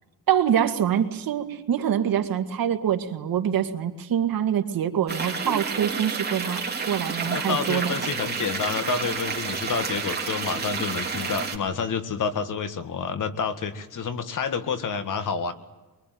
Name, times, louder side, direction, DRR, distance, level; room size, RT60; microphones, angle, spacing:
voice 1, 0.3-6.6 6.9-7.9, right 9 dB, 70° right, 6 dB, 2.0 m, -25 dB
sound 1, 5.1-11.6, right 5 dB, 25° right, 3.4 m, -30 dB
voice 2, 7.2-15.5, left 5 dB, 60° left, 10 dB, 1.9 m, -29 dB
23.0 x 23.0 x 9.3 m, 1.2 s
cardioid pair, 125°, 36 cm